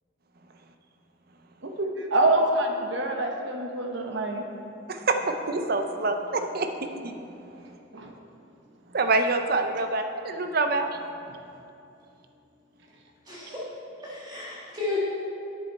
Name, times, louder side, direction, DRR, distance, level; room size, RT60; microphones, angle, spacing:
voice 1, 1.6-4.4 7.9-8.1, right 2 dB, 65° right, 2 dB, 1.0 m, -26 dB
voice 2, 4.9-7.1 8.9-10.9, right 3 dB, 50° right, 6 dB, 0.6 m, -26 dB
voice 3, 13.3-13.6 14.0-15.0, left 3 dB, 20° right, -7 dB, 1.6 m, -33 dB
10.5 x 7.3 x 4.1 m, 2.7 s
head